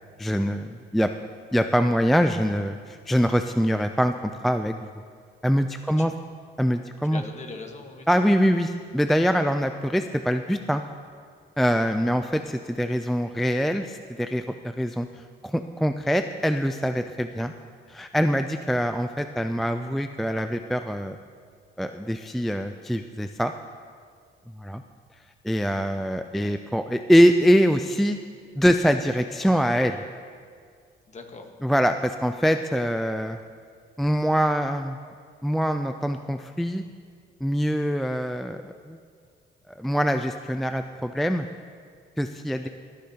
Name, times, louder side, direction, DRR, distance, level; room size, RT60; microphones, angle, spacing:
voice 1, 0.2-1.1 1.5-4.9 5.4-6.1 6.6-7.2 8.1-10.8 11.6-17.5 17.9-21.2 21.8-23.5 24.6-24.8 25.4-28.2 28.6-30.0 31.6-33.4 34.0-35.0 35.4-36.8 37.4-39.0 39.7-41.5 42.2-42.7, equal, ahead, 7 dB, 0.3 m, -24 dB
voice 2, 7.0-8.5 31.1-31.5 42.6-42.7, left 3 dB, 35° left, 3 dB, 1.4 m, -41 dB
18.0 x 10.0 x 2.9 m, 2.1 s
cardioid pair, 90°, 20 cm